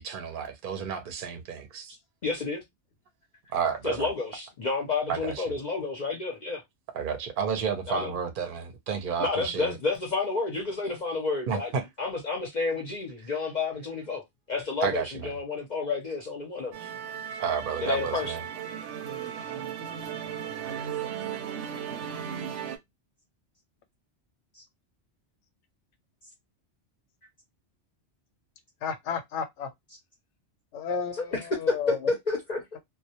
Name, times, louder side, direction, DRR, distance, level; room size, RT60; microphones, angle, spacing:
voice 1, 0.0-1.9 3.5-4.1 5.1-5.5 6.9-9.7 11.5-11.9 14.8-15.3 16.8-16.9 17.4-18.4, right 6 dB, 55° right, 0.7 m, -31 dB
voice 2, 2.2-2.6 3.8-6.6 7.9-8.1 9.2-11.7 12.0-16.8 17.8-18.4 24.5-24.6 31.2-31.4 31.7-32.8, left 4 dB, 50° left, 0.6 m, -30 dB
Musical instrument, 16.7-22.8, right 8 dB, 85° right, 0.9 m, -36 dB
voice 3, 28.8-29.7 30.7-32.1, left 6 dB, 90° left, 0.9 m, -32 dB
2.1 x 2.1 x 2.7 m
omnidirectional pair, 1.2 m